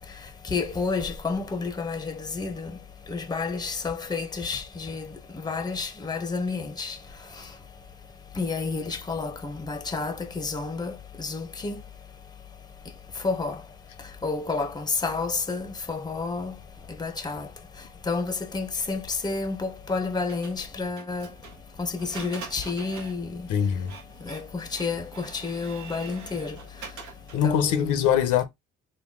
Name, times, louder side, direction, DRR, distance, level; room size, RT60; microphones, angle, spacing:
voice 1, 0.5-2.7 3.1-5.1 5.4-7.0 8.4-11.8 13.2-13.6 14.2-16.5 17.0-17.5 18.1-21.3 21.8-23.3 24.2-26.6 27.4-28.0, left 4 dB, 15° left, 0.6 m, -30 dB
Printer, 20.3-27.5, right 5 dB, 75° right, 1.0 m, -45 dB
voice 2, 23.5-23.9 27.3-28.4, left 8 dB, 75° left, 0.7 m, -22 dB
3.9 x 2.2 x 3.5 m
cardioid pair, 90°, 30 cm